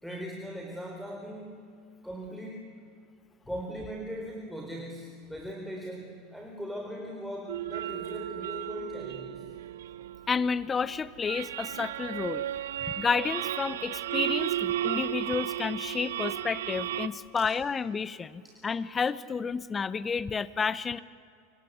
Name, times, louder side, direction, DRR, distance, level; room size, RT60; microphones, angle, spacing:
voice 1, 0.0-2.9 3.5-9.5 17.4-17.5, equal, ahead, 0 dB, 4.2 m, -40 dB
sound 1, 7.5-17.1, right 12 dB, 70° right, 0.8 m, -34 dB
voice 2, 10.3-12.5 12.8-21.0, left 5 dB, 20° left, 18 dB, 0.8 m, -31 dB
28.5 x 24.5 x 8.4 m, 2.4 s
figure-of-eight pair, 85°, 0 cm